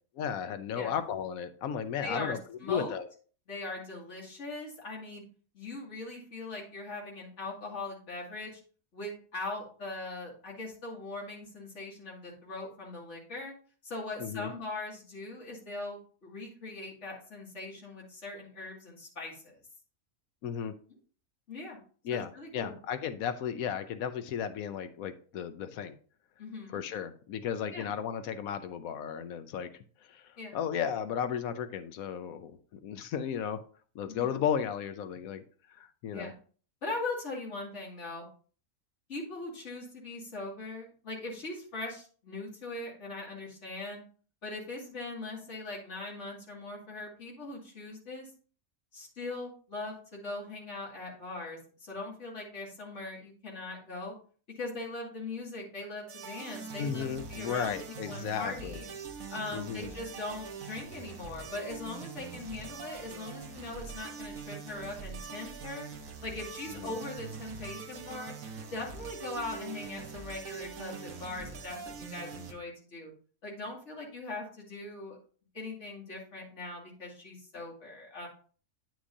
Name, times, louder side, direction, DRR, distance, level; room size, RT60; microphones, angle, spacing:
voice 1, 0.2-2.4 2.7-3.1 14.2-14.5 20.4-20.8 22.0-26.0 26.7-29.7 30.0-33.6 33.9-35.4 35.7-36.3 56.8-58.8 59.5-59.9 66.8-67.0, left 8 dB, 80° left, 11 dB, 1.1 m, -34 dB
voice 2, 2.0-2.9 3.5-5.2 5.5-8.6 8.9-13.5 13.8-19.6 21.5-21.8 22.1-22.8 26.4-26.8 27.7-27.9 30.4-30.6 34.1-34.4 36.1-36.3 36.8-38.2 39.1-44.0 44.4-48.3 48.9-54.1 54.5-58.9 59.3-65.9 66.2-68.3 68.7-73.1 73.4-75.2 75.5-78.3, left 2 dB, 55° left, -3 dB, 2.7 m, -40 dB
sound 1, 56.1-72.5, right 5 dB, 75° right, 1.5 m, -43 dB
9.6 x 6.1 x 2.7 m, 0.42 s
omnidirectional pair, 1.5 m